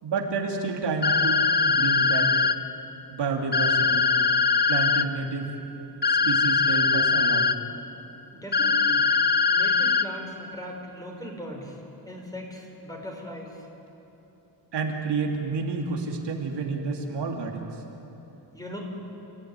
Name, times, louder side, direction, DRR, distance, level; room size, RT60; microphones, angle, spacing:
voice 1, 0.0-2.3 3.1-4.1 4.7-5.5 6.1-7.4 14.7-17.7, right 4 dB, 90° right, 1 dB, 3.0 m, -29 dB
sound 1, 1.0-2.5 3.5-5.0 6.0-7.5 8.5-10.0, left 4 dB, 25° left, 0.7 m, -21 dB
voice 2, 8.3-9.1 9.5-13.7 18.5-18.8, equal, 10° left, 0 dB, 5.3 m, -39 dB
29.0 x 15.0 x 9.8 m, 3.0 s
wide cardioid pair, 115°, 41 cm